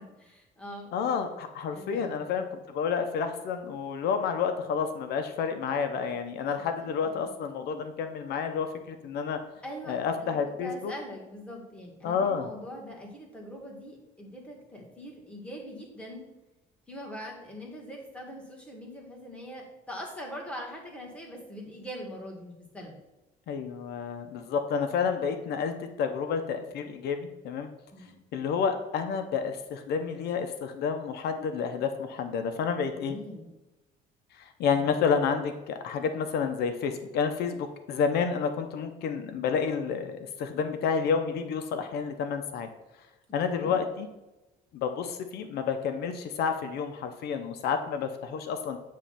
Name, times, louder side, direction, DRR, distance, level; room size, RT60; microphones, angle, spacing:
voice 1, 0.0-0.9 1.7-2.2 6.8-7.3 9.6-16.3 16.9-23.0 27.9-28.2 32.9-33.5 43.5-43.8, equal, 5° left, -2 dB, 2.0 m, -42 dB
voice 2, 0.9-9.4 9.9-10.9 12.0-12.5 23.5-27.7 28.3-33.2 34.3-42.7 43.3-44.1 44.7-48.8, left 6 dB, 75° left, 7 dB, 0.7 m, -30 dB
8.4 x 3.1 x 5.7 m, 1.0 s
cardioid pair, 110°, 17 cm